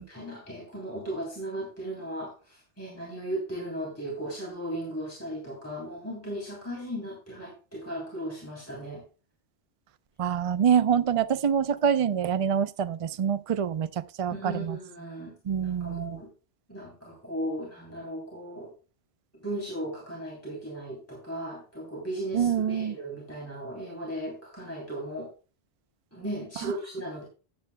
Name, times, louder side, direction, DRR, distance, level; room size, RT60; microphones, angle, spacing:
voice 1, 0.0-9.0 14.3-16.3 16.7-18.7 19.4-25.3 26.1-27.3, right 1 dB, 15° left, 3.2 m, -36 dB
voice 2, 10.2-14.8 15.5-16.2 22.3-23.0, right 8 dB, 45° right, 0.4 m, -26 dB
14.0 x 9.4 x 2.2 m
omnidirectional pair, 1.1 m